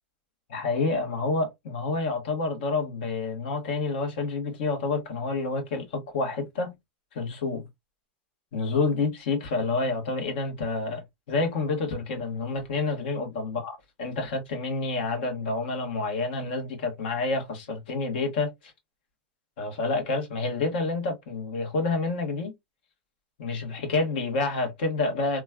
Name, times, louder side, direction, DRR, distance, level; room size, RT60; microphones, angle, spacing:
voice 1, 0.5-6.7 7.1-7.6 8.5-11.0 11.3-18.7 19.6-22.5 23.4-25.4, left 3 dB, 70° left, 1.2 m, -28 dB
3.0 x 2.3 x 2.3 m
hypercardioid pair, 115°, 6 cm